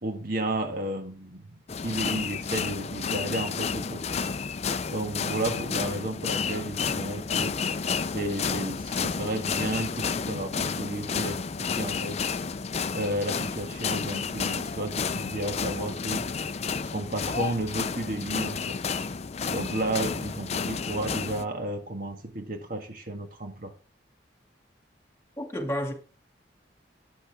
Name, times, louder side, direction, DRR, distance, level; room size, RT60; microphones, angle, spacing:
voice 1, 0.0-1.4 1.8-4.3 4.9-7.6 8.1-12.2 12.9-16.2 16.8-18.8 19.4-23.7, right 1 dB, 50° right, 1.7 m, -32 dB
sound 1, 1.7-21.5, left 5 dB, 35° left, 0.5 m, -31 dB
voice 2, 25.4-25.9, equal, 15° left, 2.4 m, -30 dB
13.0 x 8.8 x 3.7 m
head